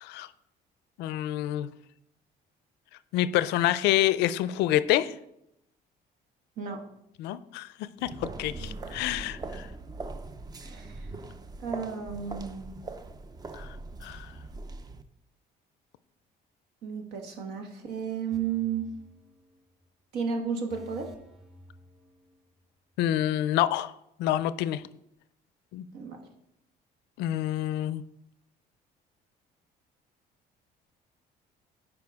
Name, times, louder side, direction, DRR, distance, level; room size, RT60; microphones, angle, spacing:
voice 1, 1.0-1.7 3.1-5.1 7.2-9.7 13.5-13.7 14.0-14.3 23.0-23.9 24.2-24.8 25.7-25.8 27.2-28.0, left 13 dB, 85° left, 15 dB, 0.4 m, -27 dB
sound 1, 8.0-15.0, right 3 dB, 25° right, 0.5 m, -41 dB
voice 2, 10.6-11.1 11.6-12.7 16.8-18.9 20.1-21.1 25.9-26.2, right 6 dB, 80° right, 3 dB, 1.3 m, -33 dB
sound 2, 18.3-19.9 20.1-20.3 20.7-22.6 22.9-23.0, equal, ahead, 1.3 m, -53 dB
9.7 x 4.9 x 3.5 m, 0.80 s
cardioid pair, 110°, 17 cm